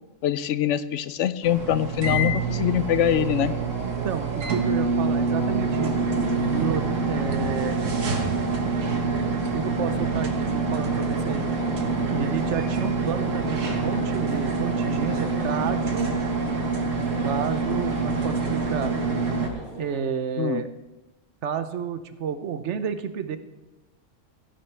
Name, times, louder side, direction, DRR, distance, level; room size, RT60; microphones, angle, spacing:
voice 1, 0.2-3.5 20.4-20.6, left 10 dB, 75° left, 14 dB, 0.9 m, -24 dB
sound 1, 1.4-19.5, right 3 dB, 85° right, 1.7 m, -26 dB
voice 2, 3.8-5.9 6.5-7.8 9.5-11.4 12.1-16.1 17.2-18.9 19.8-20.7 21.4-23.4, right 7 dB, 70° right, 10 dB, 1.0 m, -30 dB
sound 2, 10.9-20.0, equal, 45° right, 4.1 m, -42 dB
17.0 x 10.0 x 3.3 m, 1.1 s
omnidirectional pair, 1.3 m